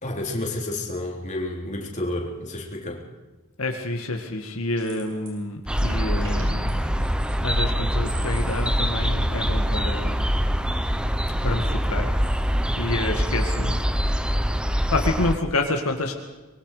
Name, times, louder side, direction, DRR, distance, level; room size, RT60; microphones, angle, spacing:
voice 1, 0.0-3.0, left 1 dB, 35° left, -1 dB, 3.9 m, -30 dB
voice 2, 3.6-7.1 7.4-10.4 11.4-12.1 12.8-13.9 14.9-16.1, left 2 dB, 85° left, 3 dB, 2.1 m, -28 dB
sound 1, 4.8-5.4 5.7-6.7, right 3 dB, 60° right, 7.5 m, -45 dB
sound 2, 5.7-15.4, equal, 5° right, 0.9 m, -24 dB
24.5 x 23.0 x 5.1 m, 1.2 s
head